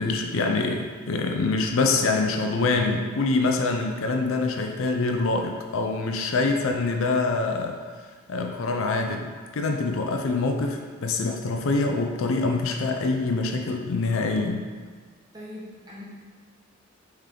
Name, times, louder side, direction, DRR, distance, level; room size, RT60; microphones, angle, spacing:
voice 1, 0.0-7.8 8.3-14.7, left 3 dB, 65° left, 3 dB, 0.4 m, -25 dB
voice 2, 15.3-16.0, left 1 dB, 20° right, -7 dB, 1.0 m, -40 dB
4.2 x 3.3 x 3.7 m, 1.5 s
head